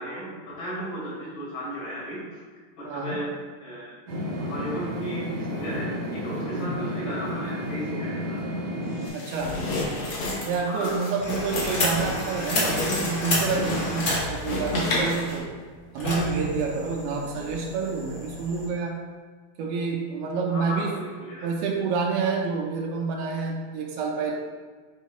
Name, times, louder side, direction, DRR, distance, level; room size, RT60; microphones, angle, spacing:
voice 1, 0.0-2.4 2.8-3.3 3.6-3.9 4.4-8.7 10.6-11.0 14.9-15.3 20.5-21.5, equal, 60° left, -8 dB, 3.5 m, -35 dB
voice 2, 2.8-3.2 6.5-6.7 9.1-9.6 10.4-15.5 15.9-19.0 19.6-20.9 21.4-24.4, right 4 dB, 80° right, 0 dB, 2.5 m, -28 dB
sound 1, 4.1-9.1, equal, 60° right, 1.8 m, -31 dB
sound 2, 9.0-15.4, left 1 dB, 80° left, 1.2 m, -30 dB
sound 3, 11.2-18.7, left 1 dB, 40° left, 1.7 m, -31 dB
9.2 x 5.3 x 2.3 m, 1.5 s
omnidirectional pair, 4.5 m